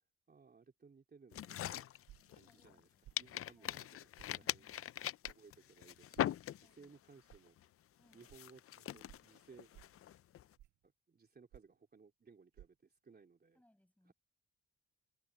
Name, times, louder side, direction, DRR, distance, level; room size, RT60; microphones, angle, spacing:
voice 1, 0.3-1.9 2.3-2.9 3.2-3.9 4.1-4.7 5.3-7.6 8.1-9.7 10.8-13.6 14.1-14.2, right 5 dB, 30° right, 3.2 m, -62 dB
sound 1, 1.3-2.8 3.2-7.0 7.3-7.6 8.1-10.5, left 12 dB, 50° left, 0.5 m, -41 dB
sound 2, 2.1-2.4 3.0-3.3 4.2-4.3 5.2-5.4 6.1-6.4 7.3-7.4 8.3-8.4 9.1-9.3 9.7-10.0 10.6-10.8 11.5-11.8 12.5-12.7, right 13 dB, 70° right, 0.7 m, -58 dB
voice 2, 2.3-3.8 4.4-4.9 6.6-6.9 8.0-8.3 13.5-14.1, left 1 dB, 5° left, 6.0 m, -73 dB
cardioid pair, 90°, 30 cm